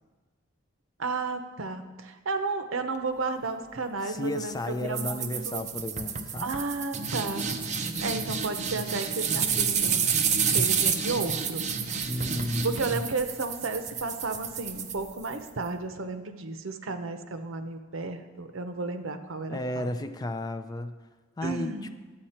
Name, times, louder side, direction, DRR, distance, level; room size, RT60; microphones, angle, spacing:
voice 1, 1.0-5.6 6.4-7.4 7.8-10.2 10.5-11.6 12.6-19.9 21.4-21.9, right 3 dB, 80° right, 8 dB, 0.8 m, -33 dB
voice 2, 4.0-6.5 12.0-13.0 19.5-20.9 21.4-22.0, left 1 dB, 20° left, 9 dB, 0.4 m, -33 dB
sound 1, 4.9-15.5, right 6 dB, 35° right, 0.6 m, -29 dB
11.5 x 8.6 x 4.3 m, 1.3 s
head